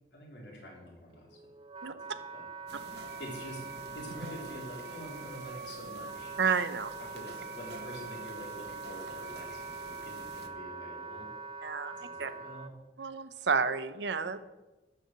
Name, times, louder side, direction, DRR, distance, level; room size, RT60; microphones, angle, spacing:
voice 1, 0.1-1.4 1.8-2.4 2.8-3.6 3.9-6.4 7.0-11.3 11.9-12.7, equal, 80° left, -2 dB, 3.8 m, -46 dB
Wind instrument woodwind instrument, 1.1-12.7, right 4 dB, 30° right, 0.4 m, -43 dB
sound 1, 2.7-10.5, right 3 dB, 65° right, 1.2 m, -49 dB
voice 2, 6.4-6.9 11.6-12.3 13.0-14.4, right 5 dB, 80° right, 13 dB, 0.7 m, -31 dB
12.5 x 4.9 x 7.6 m, 1.1 s
head